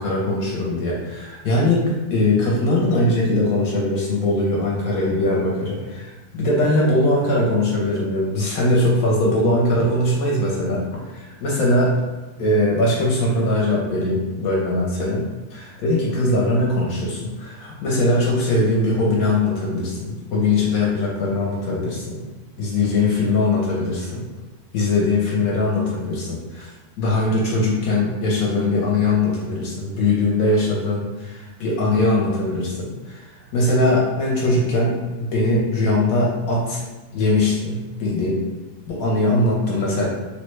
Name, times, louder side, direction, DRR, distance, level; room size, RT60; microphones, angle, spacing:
voice 1, 0.0-12.0 12.4-22.2 22.6-24.2 24.7-26.7 27.0-33.3 33.5-36.9 37.1-38.4 38.9-40.1, left 2 dB, 70° left, -4 dB, 1.0 m, -21 dB
3.3 x 2.1 x 3.1 m, 1.2 s
omnidirectional pair, 1.7 m